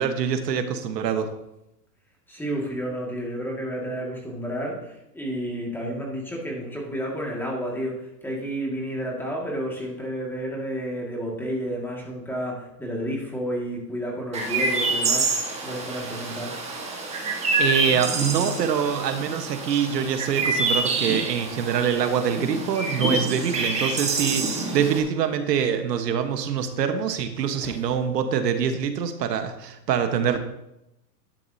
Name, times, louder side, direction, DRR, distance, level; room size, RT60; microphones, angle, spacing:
voice 1, 0.0-1.3 17.3-30.4, right 7 dB, 75° right, 7 dB, 1.4 m, -25 dB
voice 2, 2.3-16.6 27.6-27.8, equal, 5° left, -2 dB, 2.0 m, -31 dB
Chirp tweet, 14.3-25.0, right 3 dB, 15° right, 1.5 m, -27 dB
12.0 x 10.0 x 2.8 m, 0.86 s
hypercardioid pair, 145°, 49 cm